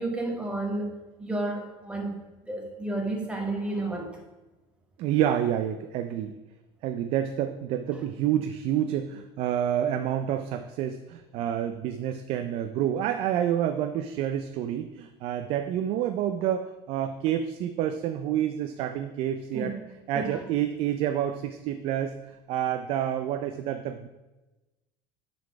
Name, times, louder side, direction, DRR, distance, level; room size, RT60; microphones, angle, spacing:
voice 1, 0.0-4.2 19.5-19.7 20.1-20.4, right 2 dB, 10° right, 2 dB, 1.1 m, -32 dB
voice 2, 5.0-6.4 6.8-19.7 20.1-22.1 22.5-24.1, right 10 dB, 50° right, 8 dB, 0.4 m, -28 dB
9.5 x 4.1 x 4.6 m, 1.1 s
cardioid pair, 160°, 12 cm